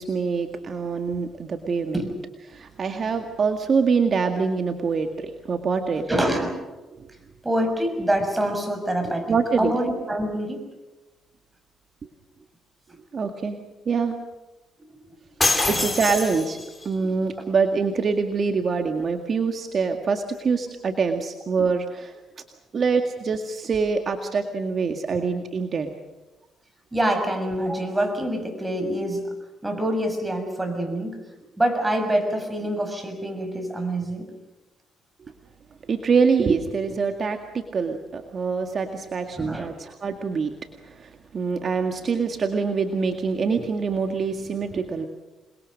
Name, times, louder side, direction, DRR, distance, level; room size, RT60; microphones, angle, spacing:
voice 1, 0.0-2.0 2.5-6.1 7.0-7.1 9.3-9.8 13.1-14.2 15.7-16.6 16.8-22.1 22.7-25.9 35.9-40.6 40.8-45.1, right 5 dB, 45° right, 5 dB, 2.0 m, -25 dB
voice 2, 6.1-6.6 7.4-9.3 9.6-10.6 15.6-16.0 26.9-29.3 29.6-31.2 31.6-34.2 39.4-39.7, right 1 dB, 15° right, 5 dB, 6.2 m, -25 dB
sound 1, 15.4-16.9, left 3 dB, 20° left, 5.0 m, -24 dB
28.0 x 22.0 x 6.5 m, 1.1 s
cardioid pair, 90°, 0 cm